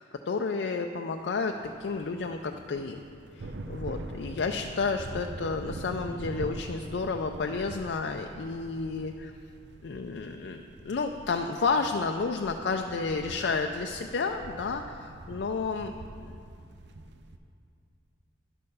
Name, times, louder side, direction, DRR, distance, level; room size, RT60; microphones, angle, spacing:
voice 1, 0.0-1.5 1.8-3.0 3.4-9.3 9.8-16.3, left 4 dB, 70° left, 4 dB, 0.4 m, -31 dB
sound 1, 1.3-17.4, right 2 dB, 70° right, 0.6 m, -44 dB
11.0 x 6.5 x 5.5 m, 2.4 s
head